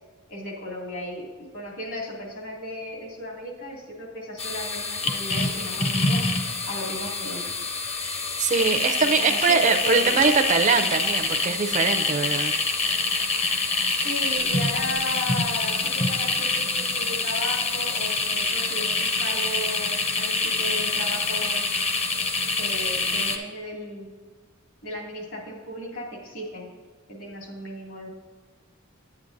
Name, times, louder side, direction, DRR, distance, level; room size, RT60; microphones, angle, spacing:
voice 1, 0.3-1.3 1.5-6.2 6.7-7.5 9.0-10.3 14.0-15.8 16.1-21.6 22.6-24.1 24.8-26.7 27.1-28.1, left 1 dB, 70° left, -2 dB, 2.3 m, -35 dB
sound 1, 4.4-23.4, left 3 dB, 30° left, 0.6 m, -26 dB
voice 2, 8.0-12.5, right 4 dB, 35° right, 7 dB, 0.5 m, -22 dB
10.0 x 8.4 x 2.6 m, 1.5 s
head